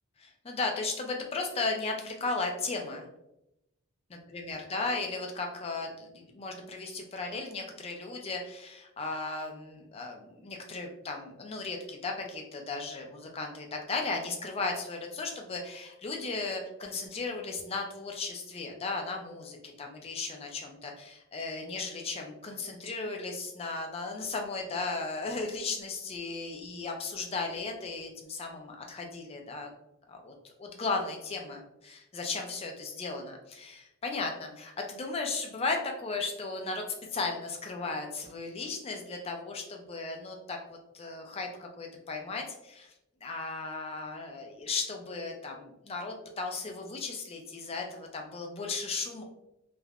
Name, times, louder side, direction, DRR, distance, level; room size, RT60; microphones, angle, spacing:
voice 1, 0.2-3.1 4.3-29.7 30.1-30.3 30.6-36.8 37.1-42.9 43.2-49.2, left 3 dB, 25° left, 2 dB, 0.4 m, -36 dB
3.3 x 2.1 x 2.3 m, 0.89 s
head